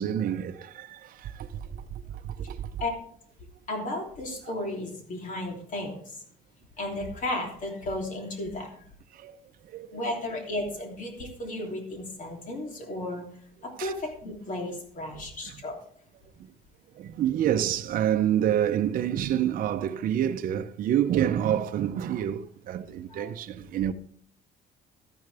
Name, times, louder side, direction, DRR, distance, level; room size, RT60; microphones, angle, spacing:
voice 1, 0.0-1.8 2.2-2.7 4.5-4.6 9.1-9.4 9.7-10.1 13.8-13.9 15.5-15.6 17.0-23.9, right 10 dB, 55° right, 0.7 m, -28 dB
voice 2, 3.7-6.2 6.8-8.8 9.9-13.2 13.6-15.8 23.1-23.3, left 1 dB, 50° left, 3.1 m, -34 dB
12.5 x 10.0 x 3.4 m
cardioid pair, 110°, 17 cm